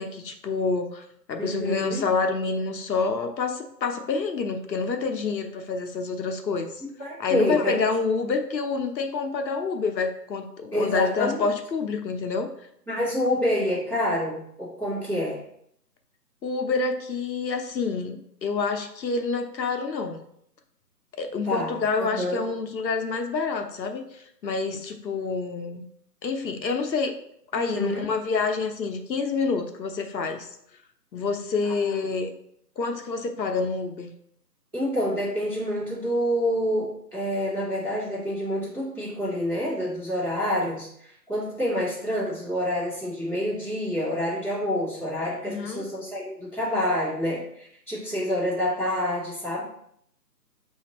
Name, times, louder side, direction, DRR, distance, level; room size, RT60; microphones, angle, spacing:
voice 1, 0.0-6.8 7.2-12.5 16.4-20.2 21.2-25.9 26.2-27.1 27.5-30.5 31.1-32.3 32.8-34.1 45.4-45.8, left 4 dB, 90° left, 6 dB, 0.8 m, -27 dB
voice 2, 1.4-2.0 7.0-7.8 10.7-11.5 12.9-15.4 21.4-21.8 22.1-22.4 27.5-28.0 31.9-32.0 34.7-49.6, equal, 5° right, -20 dB, 1.4 m, -27 dB
5.8 x 2.8 x 2.9 m, 0.71 s
hypercardioid pair, 170°, 50 cm